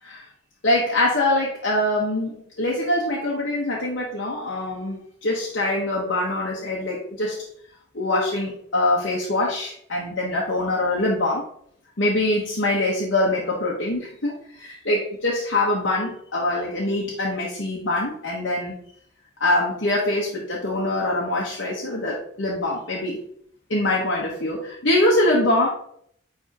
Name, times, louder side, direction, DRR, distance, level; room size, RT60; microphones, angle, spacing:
voice 1, 0.6-7.4 7.9-11.4 12.0-18.8 19.4-23.2 23.7-25.7, left 1 dB, 70° left, -4 dB, 1.2 m, -24 dB
9.8 x 3.5 x 2.9 m, 0.66 s
head